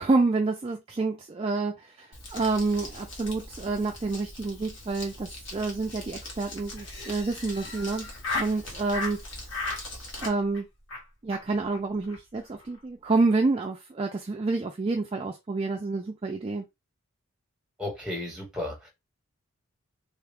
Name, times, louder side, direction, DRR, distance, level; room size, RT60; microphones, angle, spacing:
voice 1, 0.0-8.1 8.3-9.2 10.2-10.7 11.2-16.7, right 3 dB, 25° right, 0.3 m, -28 dB
Crumpling crinkling, 2.1-10.3, left 1 dB, 60° left, 1.2 m, -42 dB
Laughter, 6.7-8.5 8.9-9.2 9.5-9.8 10.1-10.6 10.9-11.0 11.3-11.4 11.7-11.8 12.0-12.2 12.4-12.8, left 3 dB, 75° left, 2.2 m, -35 dB
voice 2, 17.8-18.9, left 2 dB, 5° right, 1.1 m, -34 dB
3.2 x 2.3 x 3.4 m
head